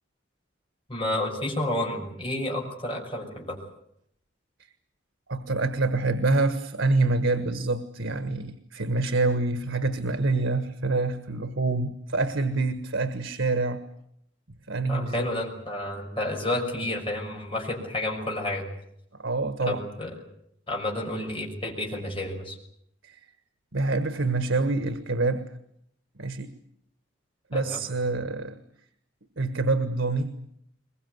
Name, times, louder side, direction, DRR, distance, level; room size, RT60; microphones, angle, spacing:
voice 1, 0.9-3.6 14.9-18.7 19.6-20.1 20.7-22.6 27.5-27.8, left 1 dB, 25° left, -1 dB, 6.1 m, -30 dB
voice 2, 5.3-13.8 14.7-15.3 19.2-19.8 23.0-23.2 23.7-25.5 26.2-26.5 27.5-28.6 29.4-30.3, right 3 dB, 85° right, 10 dB, 1.5 m, -26 dB
22.0 x 22.0 x 9.5 m, 0.72 s
head